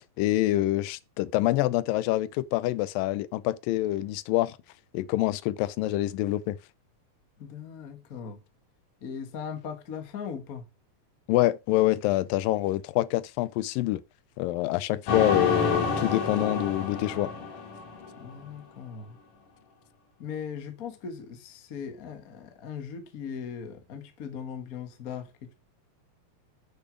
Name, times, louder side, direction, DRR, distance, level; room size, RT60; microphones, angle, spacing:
voice 1, 0.2-4.6 4.9-6.6 11.3-14.0 14.4-17.3, left 16 dB, 90° left, 2.4 m, -26 dB
voice 2, 7.4-8.4 9.0-10.6 18.2-19.2 20.2-25.5, left 7 dB, 55° left, 1.0 m, -39 dB
sound 1, 15.1-18.5, left 4 dB, 70° left, 3.4 m, -29 dB
8.1 x 6.8 x 5.0 m
omnidirectional pair, 3.9 m